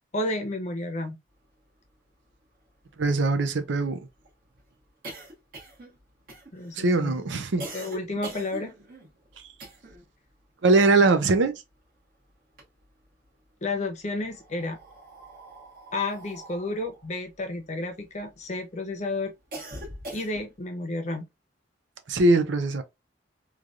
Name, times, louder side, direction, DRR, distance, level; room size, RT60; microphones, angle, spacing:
voice 1, 0.1-1.2 6.5-7.1 7.7-8.7 13.6-14.8 15.9-19.3 20.1-21.3, left 2 dB, 40° left, 0.7 m, -31 dB
sound 1, 1.9-2.0 2.2-2.3 2.7-10.1 10.4-12.0 12.3-13.3 14.0-18.5 18.9-20.7, right 1 dB, 50° right, 1.3 m, -44 dB
voice 2, 3.0-4.1 6.8-7.7 10.6-11.6 22.1-22.8, right 3 dB, 75° right, 0.5 m, -21 dB
3.1 x 2.4 x 2.4 m
head